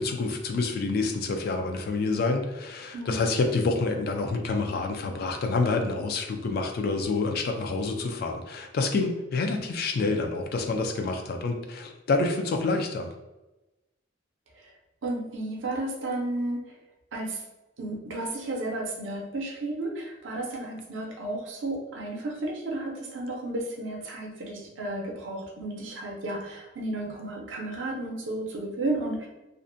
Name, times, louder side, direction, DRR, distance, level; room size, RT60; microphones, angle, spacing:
voice 1, 0.0-13.1, left 3 dB, 50° left, 4 dB, 0.3 m, -27 dB
voice 2, 2.9-3.3 15.0-16.6 17.1-17.4 17.8-29.3, right 2 dB, 70° right, 0 dB, 0.6 m, -33 dB
2.5 x 2.1 x 2.5 m, 1.0 s
head